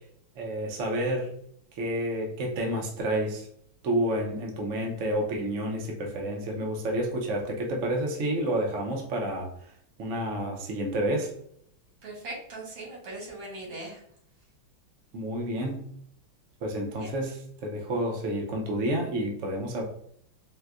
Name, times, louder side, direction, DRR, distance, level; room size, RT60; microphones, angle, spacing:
voice 1, 0.4-1.3 1.8-3.5 3.8-9.5 10.0-11.3 15.1-15.9 16.6-19.8, right 1 dB, 60° right, 0 dB, 0.8 m, -29 dB
voice 2, 12.0-14.0 17.0-17.1, right 2 dB, 90° right, -2 dB, 2.0 m, -39 dB
4.4 x 2.2 x 2.4 m, 0.68 s
omnidirectional pair, 2.2 m